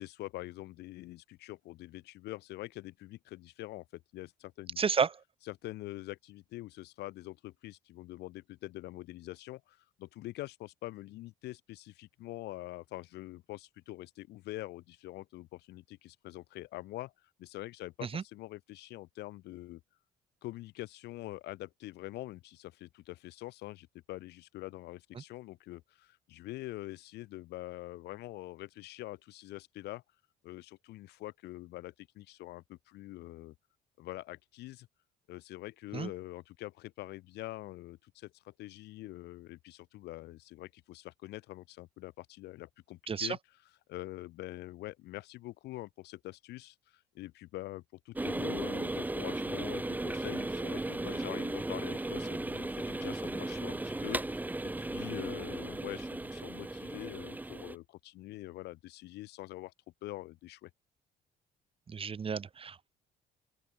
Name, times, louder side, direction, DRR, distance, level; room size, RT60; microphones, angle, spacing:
voice 1, 0.0-4.8 5.5-17.1 17.4-19.8 20.4-30.0 30.4-33.5 34.0-34.9 35.3-43.4 43.9-59.7 60.0-60.7, left 17 dB, 80° left, 3.6 m, -45 dB
voice 2, 4.8-5.2 18.0-18.2 35.9-36.1 43.1-43.4 61.9-62.9, right 6 dB, 35° right, 3.0 m, -32 dB
sound 1, 48.1-57.8, right 2 dB, 10° right, 2.1 m, -36 dB
open air
cardioid pair, 110°, 17 cm